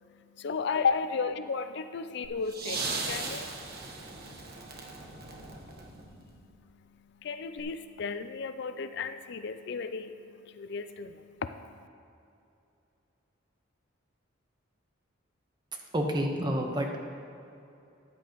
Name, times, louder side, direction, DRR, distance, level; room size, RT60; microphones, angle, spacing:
voice 1, 0.4-3.5 7.2-11.6, left 5 dB, 60° left, 10 dB, 0.4 m, -33 dB
sound 1, 2.2-6.4 7.6-7.7, right 3 dB, 50° right, 1.3 m, -38 dB
voice 2, 15.9-17.0, equal, 20° right, 2 dB, 1.1 m, -29 dB
14.0 x 10.0 x 3.1 m, 2.7 s
head